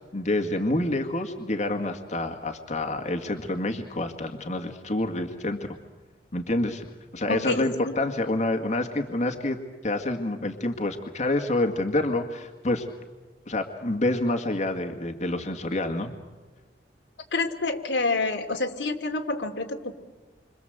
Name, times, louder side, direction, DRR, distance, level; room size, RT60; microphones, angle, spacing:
voice 1, 0.1-5.8 6.3-6.9 7.1-9.6 9.8-12.9 13.5-16.1, left 2 dB, 40° left, 4 dB, 1.9 m, -27 dB
voice 2, 7.3-7.9 17.3-19.9, left 3 dB, 85° left, 4 dB, 2.7 m, -27 dB
28.5 x 26.0 x 8.0 m, 1.3 s
head